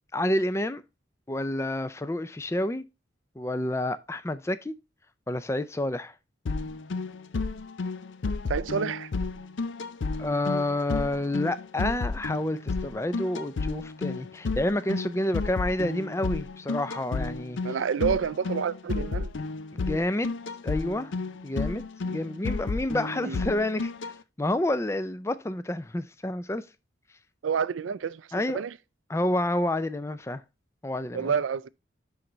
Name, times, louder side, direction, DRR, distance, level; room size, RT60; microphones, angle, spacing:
voice 1, 0.1-0.8 1.3-2.8 3.4-4.7 5.3-6.1 10.2-17.6 19.7-20.3 20.6-21.1 21.4-24.1 24.4-26.6 28.3-28.6 29.1-30.4 30.8-31.3, left 1 dB, 15° left, 0.4 m, -29 dB
sound 1, 6.5-24.1, left 3 dB, 75° left, 0.5 m, -32 dB
voice 2, 8.5-9.1 17.6-19.3 23.2-23.4 27.4-28.7 31.1-31.7, right 6 dB, 80° right, 0.4 m, -29 dB
10.5 x 3.9 x 3.1 m
head